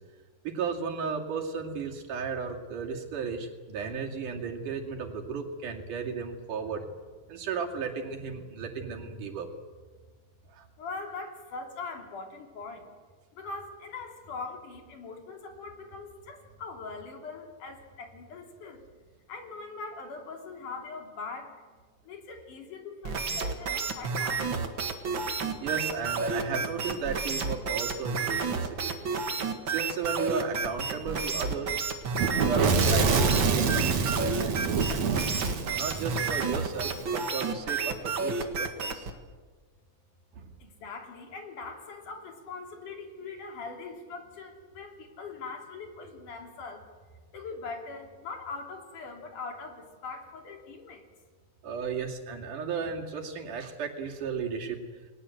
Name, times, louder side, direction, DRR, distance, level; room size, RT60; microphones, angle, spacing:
voice 1, 0.4-6.9 7.3-9.5 10.5-10.7 25.6-29.0 29.7-31.8 32.4-35.3 35.8-39.1 40.3-40.4 51.6-54.8, right 5 dB, 90° right, 1 dB, 4.0 m, -34 dB
voice 2, 10.8-12.9 13.3-18.8 19.3-21.8 22.0-24.5 40.6-46.9 47.3-51.0, left 4 dB, 85° left, 3 dB, 4.6 m, -41 dB
sound 1, 23.0-39.1, right 4 dB, 45° right, 2.2 m, -31 dB
Fire / Explosion, 32.2-37.0, right 5 dB, 60° right, 3.1 m, -26 dB
29.5 x 20.5 x 7.9 m, 1.4 s
omnidirectional pair, 3.5 m